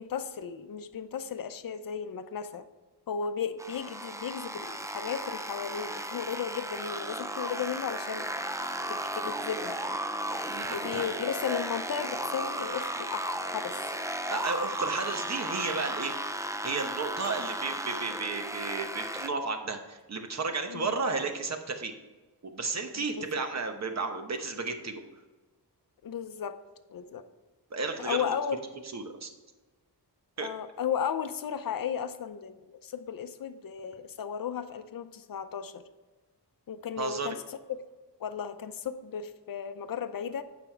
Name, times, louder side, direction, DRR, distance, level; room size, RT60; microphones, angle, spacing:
voice 1, 0.0-2.6 3.1-8.3 8.9-9.8 10.7-13.8 20.7-20.9 23.0-23.4 26.0-26.6 26.9-27.2 28.0-28.6 30.4-35.8 36.7-37.6 38.2-40.4, left 7 dB, 55° left, 10 dB, 0.6 m, -35 dB
sound 1, 3.6-19.3, right 1 dB, 10° right, 0.3 m, -35 dB
voice 2, 10.5-11.1 14.3-16.1 16.6-21.9 22.4-25.0 27.7-28.3 28.9-29.3 30.4-30.5 37.0-37.4, right 4 dB, 40° right, 6 dB, 0.9 m, -33 dB
9.3 x 6.0 x 4.5 m, 1.2 s
wide cardioid pair, 175°, 41 cm